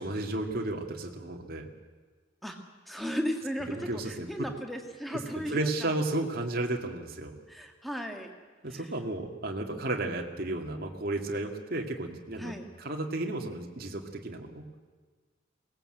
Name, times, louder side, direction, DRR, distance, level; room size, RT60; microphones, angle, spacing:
voice 1, 0.0-1.7 3.7-4.5 5.1-5.2 5.5-7.4 8.6-14.7, right 2 dB, 50° right, 2 dB, 2.2 m, -33 dB
voice 2, 2.9-5.9 7.5-8.3 8.6-8.9 12.4-12.7, equal, ahead, 3 dB, 1.9 m, -35 dB
23.0 x 18.5 x 7.8 m, 1.4 s
head